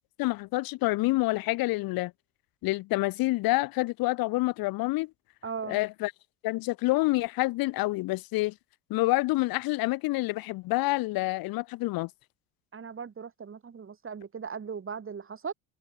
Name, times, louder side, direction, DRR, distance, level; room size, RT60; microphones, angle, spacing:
voice 1, 0.2-2.1 2.6-5.1 5.7-6.1 6.4-8.5 8.9-12.1, left 20 dB, 75° left, 2.8 m, -27 dB
voice 2, 5.4-5.8 12.7-15.5, right 6 dB, 35° right, 6.9 m, -38 dB
supercardioid pair, 80°, 36 cm